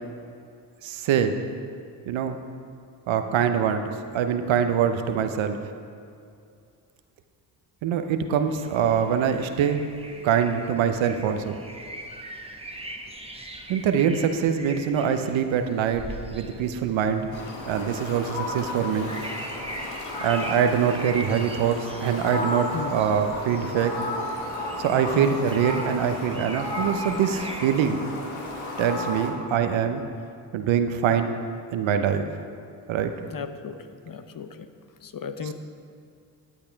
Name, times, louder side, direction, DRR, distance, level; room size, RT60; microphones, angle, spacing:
voice 1, 0.8-1.3 2.1-2.4 3.1-3.8 4.1-5.6 7.8-9.8 10.2-11.6 13.7-16.0 16.3-17.3 17.6-19.1 20.2-23.9 24.8-28.0 28.8-30.0 30.5-31.4 31.7-32.3 32.9-33.1, right 8 dB, 70° right, 7 dB, 0.9 m, -24 dB
sound 1, 8.5-27.7, right 1 dB, 10° right, 1.2 m, -41 dB
Fowl, 17.3-29.3, left 1 dB, 70° left, 1.8 m, -33 dB
voice 2, 33.3-33.8 34.0-34.7 35.0-35.5, left 6 dB, 45° left, 9 dB, 0.9 m, -35 dB
11.0 x 8.5 x 4.6 m, 2.4 s
hypercardioid pair, 50°, 49 cm